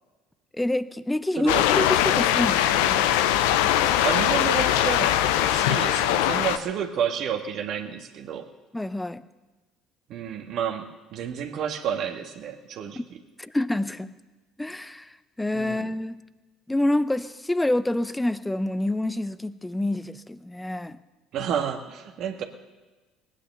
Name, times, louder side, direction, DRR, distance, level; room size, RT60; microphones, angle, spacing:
voice 1, 0.5-3.2 8.7-9.2 13.0-13.1 13.4-14.1 14.6-16.2 16.7-21.0, left 1 dB, 10° left, 0.7 m, -27 dB
sound 1, 1.5-6.6, left 11 dB, 75° left, 0.7 m, -21 dB
voice 2, 4.0-8.5 10.1-13.0 15.5-15.8 21.3-22.4, right 8 dB, 60° right, 1.7 m, -30 dB
19.0 x 10.0 x 6.8 m
hypercardioid pair, 60°, 0 cm